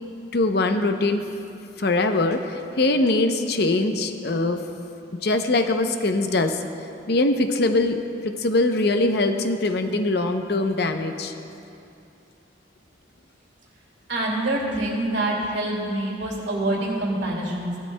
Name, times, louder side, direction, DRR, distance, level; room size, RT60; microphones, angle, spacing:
voice 1, 0.3-1.2 1.8-4.6 5.2-6.6 7.1-8.0 8.2-11.3, left 2 dB, 55° left, 7 dB, 0.6 m, -22 dB
voice 2, 14.1-17.8, right 1 dB, 65° right, -3 dB, 2.4 m, -26 dB
17.0 x 12.0 x 2.2 m, 2.7 s
head